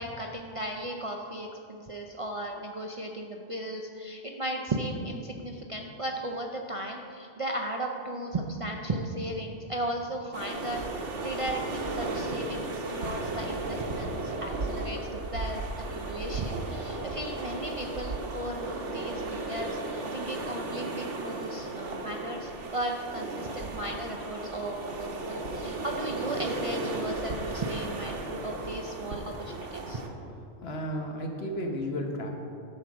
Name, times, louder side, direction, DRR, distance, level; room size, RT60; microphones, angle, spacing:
voice 1, 0.0-10.8 11.2-15.6 15.9-30.0, right 1 dB, 40° right, 1 dB, 0.5 m, -36 dB
sound 1, 10.3-30.1, right 2 dB, 85° right, 1.3 m, -35 dB
voice 2, 30.6-32.3, equal, 60° left, 2 dB, 1.3 m, -33 dB
12.0 x 4.6 x 6.1 m, 2.6 s
omnidirectional pair, 1.2 m